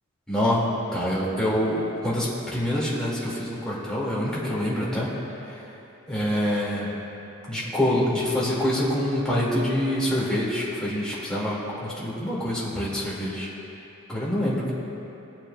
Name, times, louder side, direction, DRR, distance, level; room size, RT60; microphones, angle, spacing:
voice 1, 0.3-0.6 0.9-5.1 5.4-5.6 6.1-6.9 7.5-13.5 14.1-14.7, left 1 dB, 5° left, -8 dB, 2.4 m, -26 dB
19.0 x 8.9 x 2.4 m, 2.9 s
head